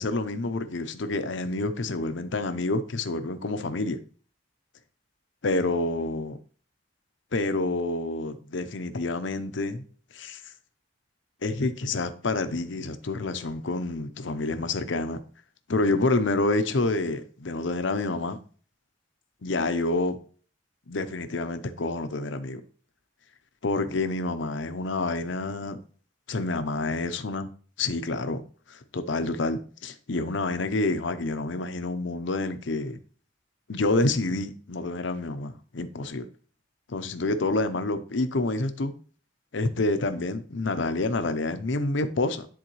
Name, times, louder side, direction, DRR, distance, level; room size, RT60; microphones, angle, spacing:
voice 1, 0.0-4.0 5.4-6.4 7.3-9.8 10.1-10.4 11.4-15.2 15.7-18.4 19.4-20.2 20.9-22.6 23.6-25.8 26.3-27.5 27.8-28.4 28.7-33.0 33.7-36.3 36.9-38.9 39.5-42.5, left 2 dB, 70° left, 0.7 m, -28 dB
10.5 x 3.8 x 3.1 m
head